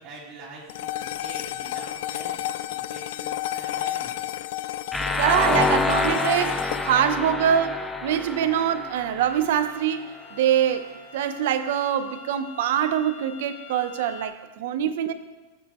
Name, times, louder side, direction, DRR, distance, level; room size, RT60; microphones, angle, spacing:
voice 1, 0.0-4.5, right 3 dB, 35° right, 3.1 m, -45 dB
sound 1, 0.7-9.2, left 13 dB, 70° left, 0.4 m, -32 dB
sound 2, 4.9-9.8, left 3 dB, 5° left, 0.5 m, -27 dB
voice 2, 5.2-15.1, right 9 dB, 75° right, 0.8 m, -24 dB
sound 3, 9.2-14.3, left 4 dB, 85° left, 1.9 m, -44 dB
18.5 x 7.3 x 3.1 m
supercardioid pair, 135°, 0 cm